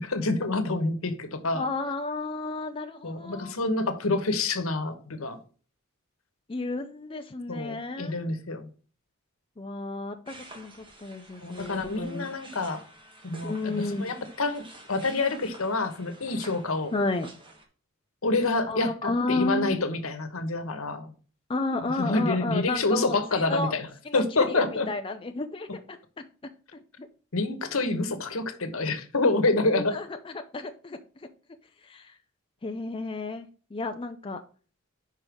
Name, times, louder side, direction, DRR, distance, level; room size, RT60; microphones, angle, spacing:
voice 1, 0.0-1.7 3.0-5.4 7.5-8.7 11.4-12.8 13.2-16.9 18.2-21.1 21.8-23.9 24.1-24.9 27.3-30.0, left 3 dB, 75° left, 1.2 m, -27 dB
voice 2, 1.5-3.6 6.5-8.2 9.6-12.3 13.4-14.1 16.9-17.3 18.7-19.8 21.5-23.7 24.1-26.0 26.7-27.1 29.8-30.0 30.3-31.0 31.8-32.1 32.6-34.4, left 2 dB, 25° left, 0.5 m, -32 dB
sound 1, 10.3-17.6, right 2 dB, 25° right, 1.4 m, -49 dB
5.5 x 5.2 x 6.1 m
head